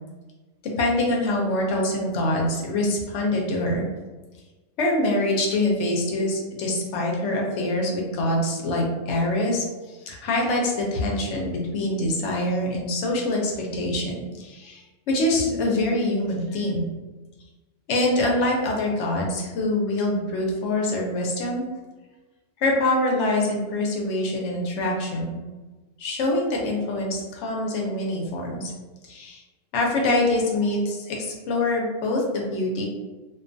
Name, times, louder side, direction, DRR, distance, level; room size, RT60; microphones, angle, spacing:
voice 1, 0.6-3.9 4.8-9.6 10.1-16.9 17.9-21.7 22.6-25.4 26.0-28.7 29.0-29.4 29.7-32.9, left 1 dB, 70° left, -1 dB, 0.9 m, -25 dB
2.4 x 2.3 x 2.5 m, 1.2 s
omnidirectional pair, 1.4 m